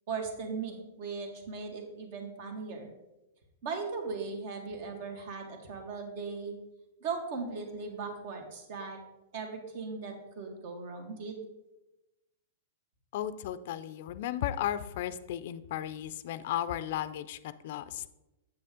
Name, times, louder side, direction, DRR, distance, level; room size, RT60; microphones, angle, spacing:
voice 1, 0.1-2.9 3.6-6.6 7.0-9.0 9.3-11.4, right 4 dB, 55° right, 4 dB, 1.7 m, -38 dB
voice 2, 13.1-18.0, left 11 dB, 55° left, 14 dB, 0.4 m, -35 dB
8.0 x 6.7 x 3.7 m, 0.99 s
hypercardioid pair, 135°, 0 cm